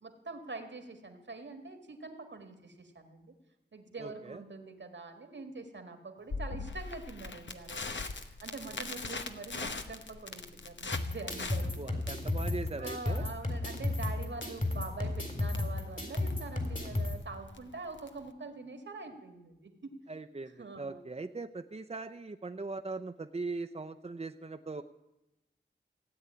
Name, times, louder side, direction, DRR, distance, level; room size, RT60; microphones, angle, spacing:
voice 1, 0.0-3.3 3.7-8.0 8.4-11.9 12.8-20.0 20.6-21.0, right 3 dB, 85° right, 6 dB, 1.9 m, -44 dB
voice 2, 4.0-4.4 8.7-8.8 11.8-13.2 20.1-24.8, right 3 dB, 35° right, 7 dB, 0.7 m, -40 dB
Crackle, 6.3-18.3, left 4 dB, 85° left, 1.0 m, -42 dB
sound 1, 10.9-17.1, left 2 dB, 45° left, 3.8 m, -33 dB
17.0 x 8.1 x 9.6 m, 0.95 s
wide cardioid pair, 50°, 19 cm